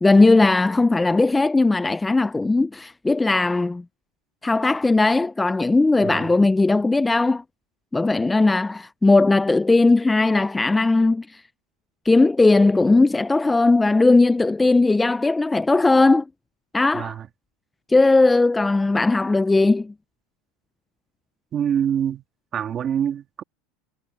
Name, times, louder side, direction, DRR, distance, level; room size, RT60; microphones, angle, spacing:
voice 1, 0.0-3.8 4.4-7.4 7.9-11.3 12.1-16.2 16.7-17.2 17.9-19.9, left 3 dB, 10° left, 0.4 m, -18 dB
voice 2, 6.0-6.3 16.9-17.3 21.5-22.2 22.5-23.4, right 9 dB, 30° right, 2.1 m, -25 dB
supercardioid pair, 145°, 0 cm